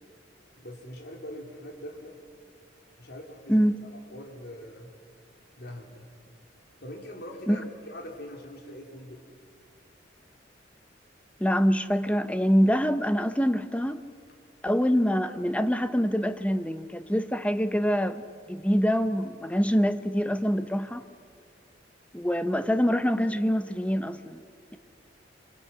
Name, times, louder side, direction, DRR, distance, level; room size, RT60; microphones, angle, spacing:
voice 1, 0.6-2.2 3.0-4.9 5.6-6.1 6.8-9.2, equal, 60° left, 3.7 m, -42 dB
voice 2, 11.4-14.0 14.6-21.0 22.1-24.4, equal, 5° left, 0.9 m, -25 dB
27.0 x 26.0 x 6.1 m
head